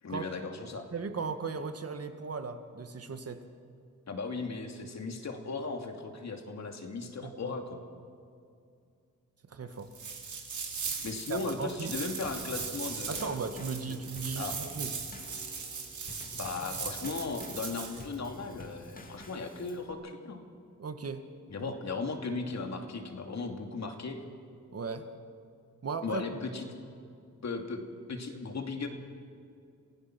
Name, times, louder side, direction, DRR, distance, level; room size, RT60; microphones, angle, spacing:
voice 1, 0.0-0.9 4.1-7.8 11.0-13.4 13.9-14.0 14.4-14.6 16.3-20.4 21.5-24.2 26.0-26.7 27.4-27.8 28.1-28.9, left 4 dB, 60° left, 4 dB, 2.6 m, -37 dB
voice 2, 0.9-3.4 7.2-7.6 9.5-9.9 11.3-11.9 13.1-14.9 20.8-21.2 21.6-21.7 24.7-25.1 25.8-26.2, right 5 dB, 50° right, 8 dB, 1.8 m, -37 dB
sound 1, 9.9-18.0, right 5 dB, 65° right, 3.6 m, -39 dB
Drum kit / Snare drum / Bass drum, 12.2-19.9, left 2 dB, 25° left, 2.2 m, -50 dB
28.0 x 16.5 x 6.2 m, 2.4 s
cardioid pair, 80°, 31 cm